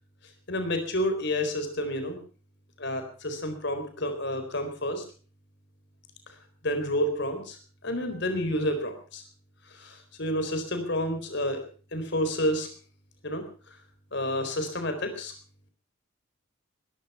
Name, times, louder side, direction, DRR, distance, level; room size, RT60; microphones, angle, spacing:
voice 1, 0.5-2.2 2.8-5.0 6.6-7.6 7.8-9.2 9.7-11.6 11.9-12.7 13.2-13.7 14.1-15.3, left 1 dB, 55° left, 7 dB, 4.2 m, -30 dB
21.0 x 11.5 x 5.7 m, 0.41 s
head